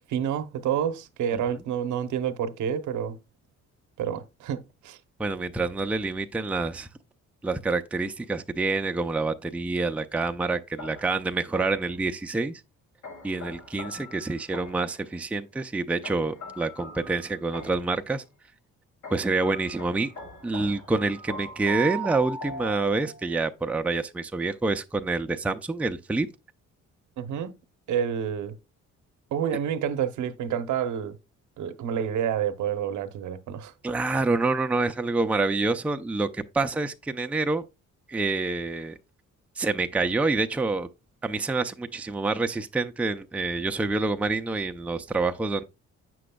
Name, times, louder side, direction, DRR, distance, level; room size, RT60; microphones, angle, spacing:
voice 1, 0.1-3.2 4.0-5.0 27.2-27.5 27.9-28.5 29.3-31.2 31.6-33.7, right 8 dB, 75° right, 0.8 m, -29 dB
voice 2, 5.2-6.9 7.4-12.6 13.2-18.2 19.1-20.1 20.4-26.3 33.8-37.6 38.1-39.0 39.6-40.9 41.2-45.6, right 3 dB, 5° right, 0.4 m, -27 dB
sound 1, 10.8-12.0 13.0-15.0 16.0-18.0 19.0-23.3, right 2 dB, 70° left, 3.0 m, -40 dB
7.6 x 6.1 x 2.2 m
cardioid pair, 90°, 30 cm